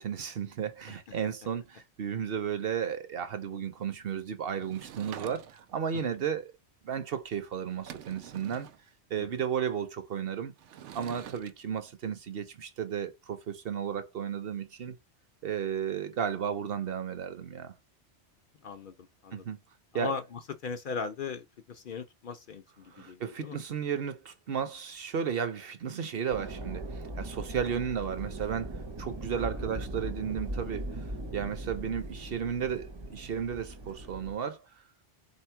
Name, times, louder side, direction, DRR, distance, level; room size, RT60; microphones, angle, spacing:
voice 1, 0.0-6.5 6.8-8.7 9.1-10.5 10.9-15.0 15.4-17.7 19.3-19.6 19.9-20.1 22.9-31.0 31.3-34.7, right 8 dB, 60° right, 0.9 m, -34 dB
Sliding door / Wood, 4.6-5.8 7.3-7.4 7.7-8.8 10.6-11.5, right 10 dB, 85° right, 0.9 m, -46 dB
voice 2, 18.6-19.5 19.9-23.6 29.3-29.5, left 5 dB, 55° left, 0.6 m, -39 dB
sound 1, 26.3-34.3, right 1 dB, 30° right, 0.6 m, -39 dB
4.2 x 2.8 x 4.3 m
omnidirectional pair, 1.2 m